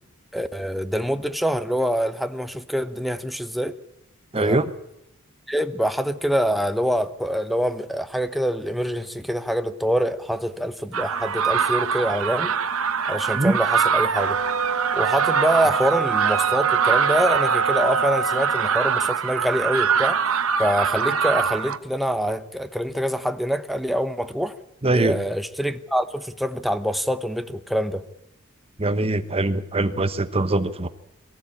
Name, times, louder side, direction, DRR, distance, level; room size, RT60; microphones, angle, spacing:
voice 1, 0.3-3.7 4.4-4.7 5.5-12.5 13.1-14.4 14.9-20.2 20.6-24.6 24.9-28.0, equal, ahead, 9 dB, 1.0 m, -25 dB
voice 2, 4.3-4.7 13.3-13.6 24.8-25.2 28.8-30.9, right 2 dB, 25° right, 12 dB, 1.0 m, -22 dB
sound 1, 10.9-21.8, right 6 dB, 70° right, 1.1 m, -23 dB
sound 2, 14.1-18.8, right 6 dB, 85° right, 3.8 m, -25 dB
23.0 x 15.0 x 8.6 m, 0.89 s
head